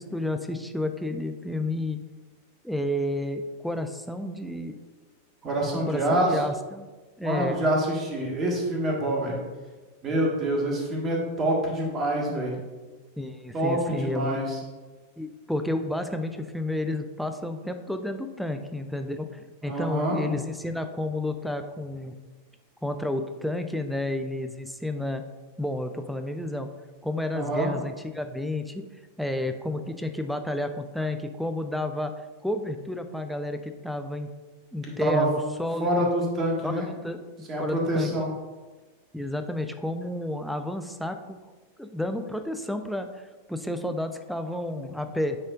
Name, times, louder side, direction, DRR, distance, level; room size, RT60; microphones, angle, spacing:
voice 1, 0.0-2.0 2.6-4.8 5.9-6.9 7.2-7.6 12.3-12.4 13.2-14.4 15.2-22.2 22.8-25.2 25.6-26.7 27.0-28.9 29.2-32.1 32.4-34.3 34.7-36.1 36.6-38.4 39.1-41.4 41.8-43.2 43.5-45.4, left 1 dB, ahead, 6 dB, 0.4 m, -31 dB
voice 2, 5.4-6.3 7.2-9.4 10.0-12.5 13.5-14.6 19.6-20.2 27.3-27.7 35.0-35.2 35.8-36.9 37.5-38.3, right 1 dB, 25° right, -1 dB, 1.6 m, -26 dB
9.3 x 4.3 x 2.5 m, 1.3 s
figure-of-eight pair, 90°, 0 cm